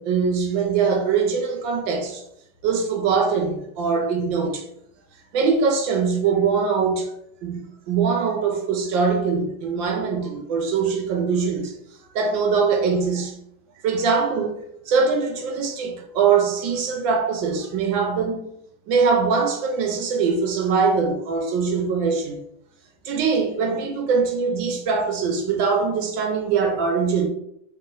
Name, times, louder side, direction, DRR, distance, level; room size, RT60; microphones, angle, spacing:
voice 1, 0.0-2.2 2.6-4.6 5.3-7.1 7.4-7.6 7.9-11.7 12.1-13.3 13.8-14.6 14.9-18.5 18.9-22.4 23.0-27.3, right 5 dB, 70° right, 1.3 m, -22 dB
3.2 x 3.1 x 3.7 m
omnidirectional pair, 2.3 m